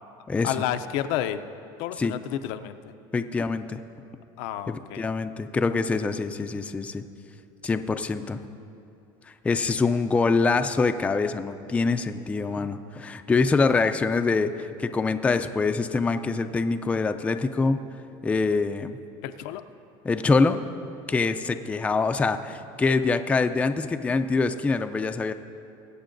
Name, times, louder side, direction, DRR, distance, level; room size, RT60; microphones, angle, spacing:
voice 1, 0.4-1.5 1.8-2.8 4.4-5.0 19.2-19.6, left 11 dB, 75° left, 9 dB, 0.5 m, -30 dB
voice 2, 3.1-3.8 4.7-7.0 7.6-8.4 9.4-17.8 18.2-19.0 20.0-20.6 21.1-25.3, left 4 dB, 10° left, 8 dB, 0.3 m, -24 dB
22.0 x 8.2 x 2.6 m, 2.7 s
cardioid pair, 135°, 12 cm